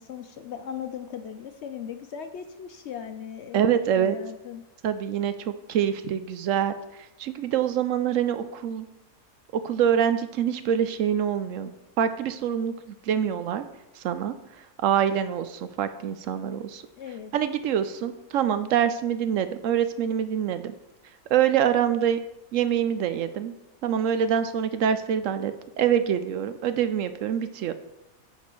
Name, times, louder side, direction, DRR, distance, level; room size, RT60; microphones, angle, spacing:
voice 1, 0.0-4.6 17.0-17.3, left 8 dB, 65° left, 8 dB, 0.7 m, -38 dB
voice 2, 3.5-4.2 4.8-6.7 7.2-8.9 9.6-12.7 13.1-13.6 14.0-14.3 14.8-16.8 17.3-20.7 21.3-22.2 22.5-23.5 23.8-27.7, right 9 dB, 70° right, 11 dB, 0.9 m, -25 dB
8.2 x 4.2 x 6.1 m, 0.96 s
omnidirectional pair, 1.5 m